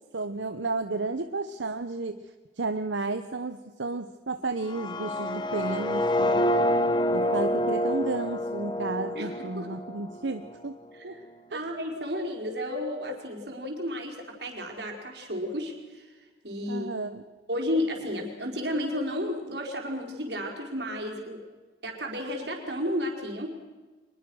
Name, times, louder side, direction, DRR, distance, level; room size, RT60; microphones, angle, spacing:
voice 1, 0.1-2.2 2.6-6.5 7.1-10.8 11.0-11.1 11.5-11.6 12.0-12.1 16.7-17.2, right 3 dB, 90° right, 9 dB, 1.0 m, -32 dB
sound 1, 4.6-10.6, left 1 dB, 25° left, 1.1 m, -27 dB
voice 2, 9.1-9.7 10.9-11.2 11.5-16.1 16.4-16.9 17.5-21.4 21.8-23.5, left 1 dB, 65° right, 2 dB, 4.8 m, -32 dB
24.5 x 21.0 x 6.4 m, 1.3 s
head